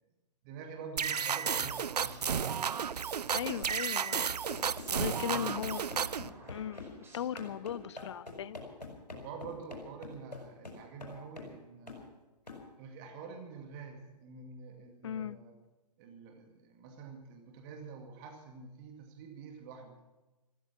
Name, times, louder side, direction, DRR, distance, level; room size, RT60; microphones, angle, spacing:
voice 1, 0.4-2.6 3.4-3.8 5.0-5.5 7.3-7.5 9.1-12.1 12.8-15.6 16.0-20.0, right 5 dB, 30° right, 3 dB, 2.4 m, -47 dB
sound 1, 1.0-7.3, right 2 dB, 10° right, 4.8 m, -55 dB
sound 2, 1.0-6.3, right 7 dB, 70° right, 0.5 m, -33 dB
voice 2, 3.3-4.3 4.9-5.9 6.5-8.6 15.0-15.4, left 9 dB, 45° left, 20 dB, 0.6 m, -37 dB
sound 3, 4.5-6.9 7.4-11.6 11.9-12.1 12.5-12.6, left 3 dB, 85° left, 5.0 m, -45 dB
15.5 x 15.0 x 6.0 m, 1.1 s
figure-of-eight pair, 130°, 21 cm